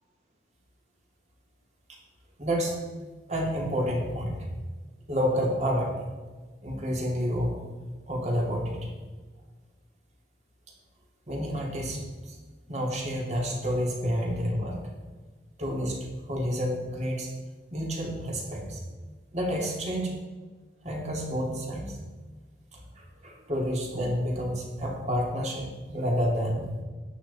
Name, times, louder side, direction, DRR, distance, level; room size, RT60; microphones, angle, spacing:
voice 1, 2.4-2.8 3.3-4.5 5.1-6.0 6.6-7.5 8.1-8.9 11.3-12.4 12.7-14.8 15.6-17.3 17.7-18.8 19.3-20.2 20.8-22.0 22.7-26.8, equal, 40° right, -1 dB, 2.8 m, -29 dB
11.0 x 9.3 x 4.3 m, 1.4 s
head